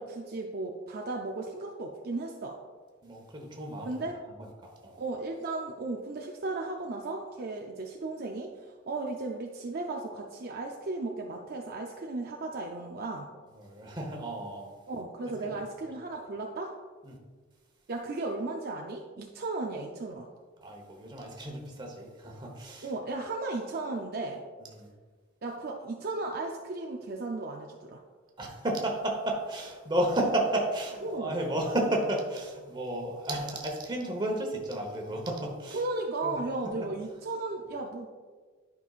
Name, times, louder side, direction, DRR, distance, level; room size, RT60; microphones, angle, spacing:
voice 1, 0.0-2.6 3.8-4.2 4.9-13.3 14.9-16.7 17.9-20.3 22.8-24.4 25.4-28.0 31.0-31.4 35.7-38.1, right 2 dB, 50° right, 1 dB, 0.5 m, -35 dB
voice 2, 3.0-5.0 13.5-14.7 15.4-15.5 17.0-17.2 20.6-22.9 24.6-24.9 28.4-35.8 36.2-36.4 36.6-36.9, right 1 dB, 20° right, 1 dB, 1.1 m, -33 dB
11.0 x 5.4 x 2.4 m, 1.5 s
head